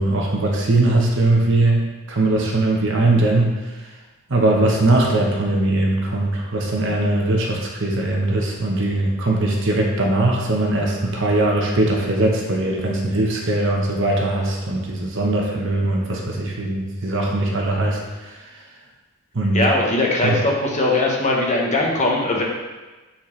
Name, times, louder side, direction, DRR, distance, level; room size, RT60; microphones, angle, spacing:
voice 1, 0.0-3.6 4.3-18.4 19.3-19.6 20.2-20.4, right 2 dB, 60° right, 0 dB, 1.1 m, -20 dB
voice 2, 19.5-22.4, left 2 dB, 35° left, -1 dB, 1.0 m, -20 dB
8.6 x 4.3 x 3.3 m, 1.2 s
head